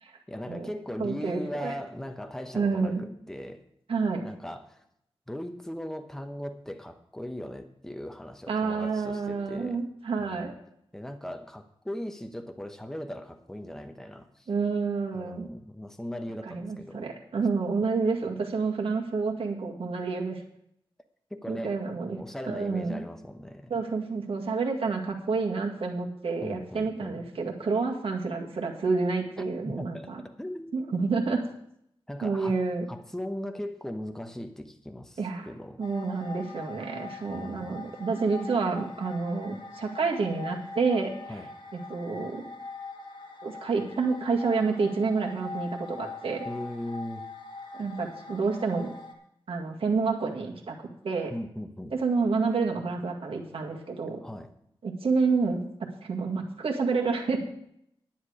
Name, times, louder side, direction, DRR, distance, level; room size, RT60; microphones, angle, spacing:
voice 1, 0.3-3.6 4.2-4.8 5.3-9.9 10.2-10.5 10.9-14.5 15.1-17.2 21.3-23.7 26.4-27.3 29.6-30.7 32.1-32.6 32.9-35.8 37.3-37.8 41.3-41.5 46.5-47.2 51.3-51.9 54.2-54.5, left 1 dB, 5° left, 6 dB, 0.9 m, -39 dB
voice 2, 1.0-1.7 2.5-3.1 3.9-4.3 8.5-10.5 14.5-15.5 16.5-20.4 21.5-22.2 22.5-23.0 23.7-30.2 30.7-31.4 32.2-32.9 35.2-35.5 35.8-41.1 41.7-42.4 43.4-46.5 47.7-48.9 49.5-51.3 51.9-54.2 54.8-55.6 56.0-57.4, right 4 dB, 75° right, 0 dB, 2.0 m, -29 dB
sound 1, 35.8-49.1, left 3 dB, 60° left, 1.9 m, -42 dB
10.5 x 10.5 x 4.9 m, 0.73 s
wide cardioid pair, 100°, 10 cm